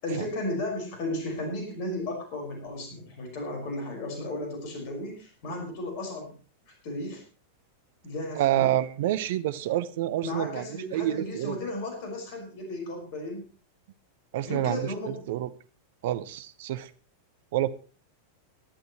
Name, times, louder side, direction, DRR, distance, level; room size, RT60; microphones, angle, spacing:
voice 1, 0.0-6.3 6.8-7.2 8.0-8.7 10.2-13.5 14.4-15.2, left 1 dB, 45° left, 3 dB, 5.3 m, -34 dB
voice 2, 8.4-10.7 10.9-11.6 14.3-15.5 16.0-16.9 17.5-17.7, right 13 dB, 55° right, 15 dB, 0.9 m, -28 dB
19.0 x 12.0 x 3.1 m, 0.36 s
figure-of-eight pair, 90°, 0 cm